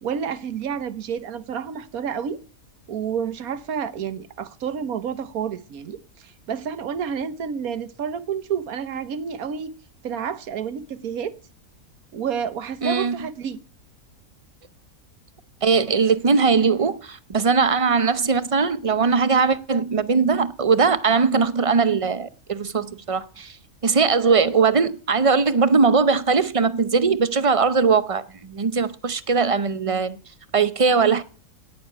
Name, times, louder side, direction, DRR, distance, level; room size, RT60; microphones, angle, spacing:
voice 1, 0.0-2.4 2.9-9.7 10.0-11.3 12.1-13.6, right 7 dB, 85° right, 1.5 m, -29 dB
voice 2, 12.8-13.1 15.6-23.5 23.8-30.2 30.5-31.2, right 5 dB, 35° right, 0.6 m, -20 dB
18.5 x 6.8 x 8.8 m
omnidirectional pair, 1.5 m